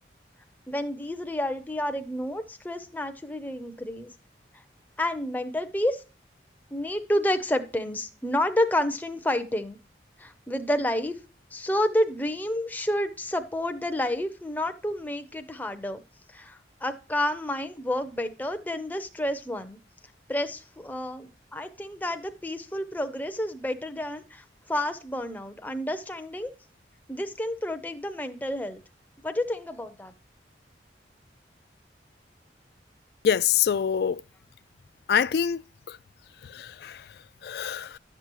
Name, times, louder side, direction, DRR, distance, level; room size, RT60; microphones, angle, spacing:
voice 1, 0.7-4.1 5.0-6.0 6.7-9.8 10.2-11.2 11.5-16.0 16.3-19.8 20.3-26.5 27.1-28.8 29.2-30.1, left 1 dB, 10° left, 0.6 m, -30 dB
voice 2, 33.2-34.2 35.1-35.6 35.9-36.0 36.4-38.0, left 8 dB, 55° left, 0.3 m, -26 dB
11.0 x 6.8 x 3.0 m
head